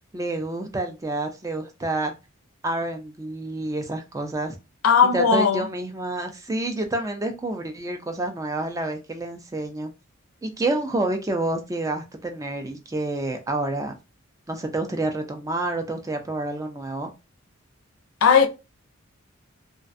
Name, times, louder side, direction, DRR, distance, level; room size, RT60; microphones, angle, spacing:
voice 1, 0.1-2.1 2.6-4.6 5.1-9.9 10.4-13.9 14.5-17.1, right 2 dB, 15° right, 0.4 m, -28 dB
voice 2, 4.8-5.6 18.2-18.5, left 6 dB, 75° left, 0.4 m, -17 dB
2.4 x 2.2 x 2.5 m
head